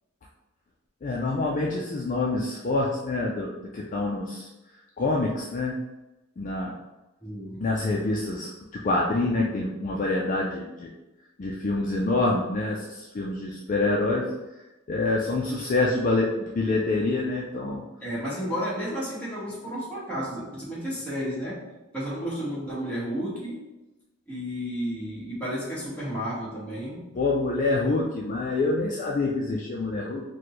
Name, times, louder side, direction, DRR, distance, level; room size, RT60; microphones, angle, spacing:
voice 1, 1.0-4.5 5.0-5.8 6.4-6.8 7.6-10.9 11.4-14.4 14.9-17.8 27.2-30.2, left 2 dB, 40° left, -2 dB, 0.4 m, -26 dB
voice 2, 7.2-7.7 18.0-23.7 24.3-27.2, equal, 5° left, -9 dB, 1.3 m, -32 dB
4.1 x 2.2 x 3.1 m, 1.0 s
head